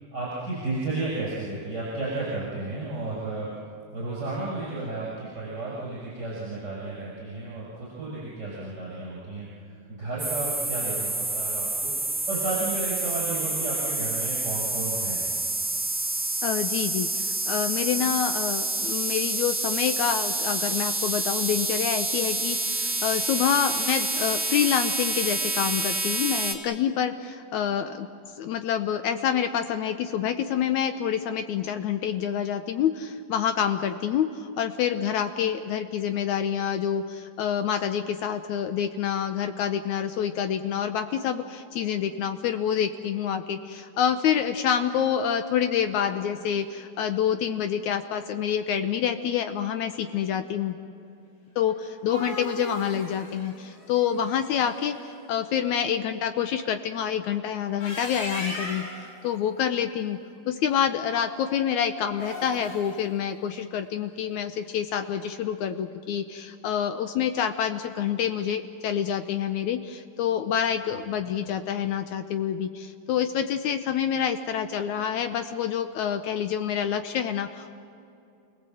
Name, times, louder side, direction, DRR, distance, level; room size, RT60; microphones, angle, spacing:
voice 1, 0.1-3.5 3.9-11.9 12.3-15.2, right 2 dB, 20° right, -5 dB, 6.3 m, -33 dB
sound 1, 10.2-26.5, right 2 dB, 90° right, 0.6 m, -28 dB
voice 2, 16.4-28.1 28.4-50.7 51.6-55.0 55.3-58.9 59.2-60.2 60.5-77.7, left 9 dB, 75° left, 8 dB, 1.9 m, -27 dB
sound 2, 51.8-54.9 57.6-59.1 62.1-63.0, left 1 dB, 55° left, 6.0 m, -37 dB
29.5 x 18.5 x 7.7 m, 2.6 s
omnidirectional pair, 3.9 m